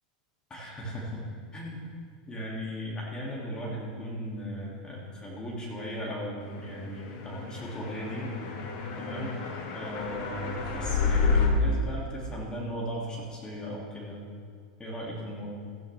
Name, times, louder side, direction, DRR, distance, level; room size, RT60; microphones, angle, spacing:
voice 1, 0.5-1.2 1.5-1.9 2.3-8.3 9.0-9.3 9.7-14.2 14.8-15.5, equal, 20° left, -4 dB, 2.5 m, -37 dB
sound 1, 7.0-11.5, left 5 dB, 55° left, 1.6 m, -29 dB
14.5 x 9.8 x 3.4 m, 2.1 s
hypercardioid pair, 115°, 4 cm